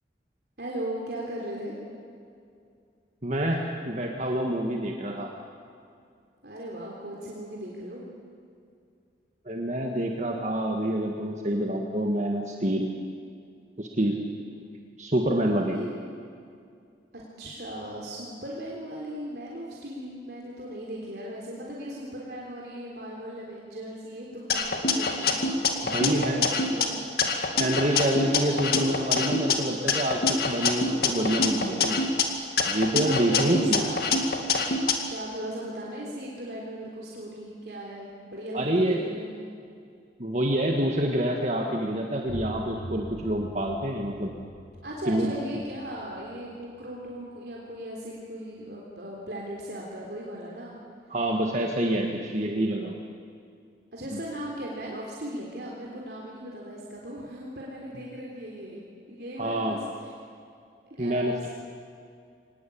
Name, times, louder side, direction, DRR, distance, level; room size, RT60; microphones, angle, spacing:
voice 1, 0.6-1.8 6.4-8.0 14.4-14.7 15.5-15.9 17.1-27.0 27.8-28.1 33.0-34.1 35.1-39.4 44.8-50.8 51.8-52.3 53.9-58.8 59.1-59.8 61.0-61.5, equal, 60° right, -3 dB, 3.6 m, -38 dB
voice 2, 3.2-5.3 9.4-12.9 13.8-14.2 15.0-15.8 25.8-26.4 27.5-32.0 32.6-33.9 38.5-39.0 40.2-44.3 45.1-45.3 51.1-53.0 54.1-54.2 59.4-59.8 61.0-61.5, right 1 dB, 40° right, 1 dB, 1.7 m, -27 dB
sound 1, 24.5-26.8 27.2-29.5 29.9-32.2 32.6-34.9, left 4 dB, 55° left, 2.3 m, -25 dB
sound 2, 42.2-47.8, equal, 80° left, 6.4 m, -43 dB
25.0 x 19.5 x 8.6 m, 2.4 s
head